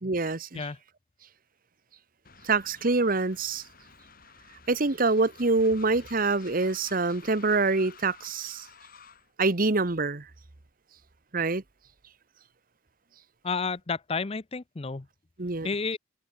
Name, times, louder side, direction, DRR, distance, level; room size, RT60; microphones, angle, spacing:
voice 1, 0.0-0.7 2.4-3.6 4.7-8.6 9.4-10.2 11.3-11.6 15.4-15.7, right 3 dB, 45° right, 1.2 m, -25 dB
Train, 2.2-9.3, left 6 dB, 50° left, 6.0 m, -52 dB
voice 2, 13.4-15.1 15.6-16.0, left 4 dB, 30° left, 0.6 m, -31 dB
open air
head